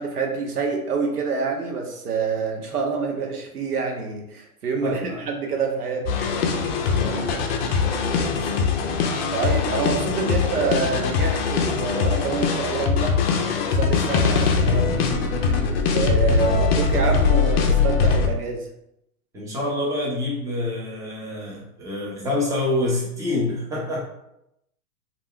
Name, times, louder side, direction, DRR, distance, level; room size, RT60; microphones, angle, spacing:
voice 1, 0.0-6.2 9.3-13.2 13.7-15.1 15.9-18.7, right 4 dB, 85° right, 1 dB, 0.7 m, -27 dB
voice 2, 4.8-5.2 6.7-8.5 19.3-24.0, left 2 dB, 5° right, -4 dB, 0.5 m, -28 dB
sound 1, 6.1-18.3, left 5 dB, 45° left, 0.4 m, -22 dB
2.3 x 2.1 x 3.5 m, 0.81 s
hypercardioid pair, 115°, 45 cm